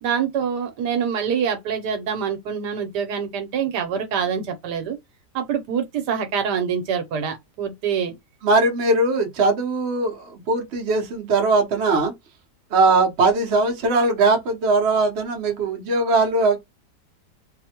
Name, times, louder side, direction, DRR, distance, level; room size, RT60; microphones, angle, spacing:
voice 1, 0.0-5.0 5.3-8.1, right 7 dB, 75° right, 1.3 m, -25 dB
voice 2, 8.4-12.1 12.7-16.6, right 3 dB, 50° right, 0.9 m, -20 dB
3.2 x 2.1 x 2.8 m
omnidirectional pair, 1.8 m